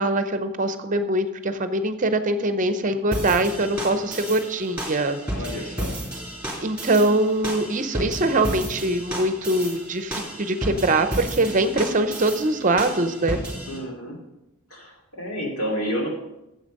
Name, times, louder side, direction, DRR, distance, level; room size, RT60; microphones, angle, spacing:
voice 1, 0.0-5.2 6.6-13.4, right 2 dB, 35° right, 9 dB, 0.7 m, -23 dB
sound 1, 3.1-13.8, right 1 dB, 5° right, 2.8 m, -33 dB
voice 2, 5.3-5.9 13.7-14.2 14.7-16.1, equal, 75° left, -1 dB, 2.7 m, -30 dB
8.9 x 7.6 x 5.3 m, 0.93 s
head